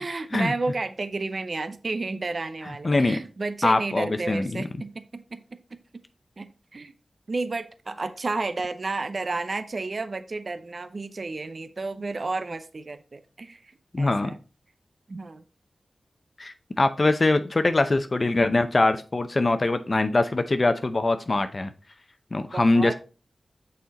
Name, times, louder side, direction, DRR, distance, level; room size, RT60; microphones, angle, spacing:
voice 1, 0.0-5.4 6.4-6.9 7.3-14.4 15.1-15.4 22.5-22.9, right 3 dB, 55° right, 11 dB, 0.6 m, -31 dB
voice 2, 2.8-3.2 3.6-4.6 13.9-14.3 16.4-21.7 22.3-22.9, left 2 dB, 45° left, 9 dB, 0.6 m, -23 dB
6.2 x 4.3 x 4.0 m, 0.35 s
cardioid pair, 45°, 0 cm